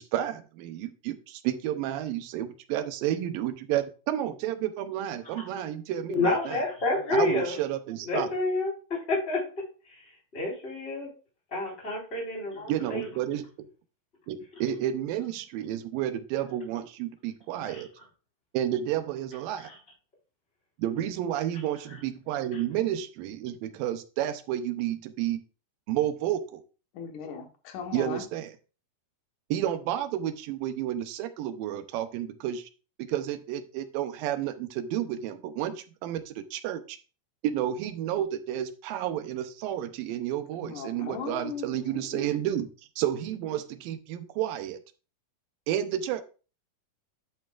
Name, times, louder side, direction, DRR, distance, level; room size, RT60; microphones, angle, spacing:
voice 1, 0.0-6.6 7.1-8.3 12.7-13.4 14.3-17.9 18.5-19.7 20.8-25.4 25.9-26.6 27.9-28.5 29.5-32.7 33.0-37.0 37.4-42.7 43.0-44.8 45.7-46.2, right 11 dB, 80° right, 10 dB, 2.5 m, -31 dB
voice 2, 6.1-7.6 8.0-8.7 9.1-9.4 10.3-11.1 11.5-13.1 17.7-17.8 19.6-19.7, left 2 dB, 15° left, -3 dB, 4.4 m, -28 dB
voice 3, 26.9-28.2 40.6-42.2, left 6 dB, 65° left, 4 dB, 2.6 m, -38 dB
10.5 x 7.6 x 2.4 m, 0.35 s
omnidirectional pair, 4.1 m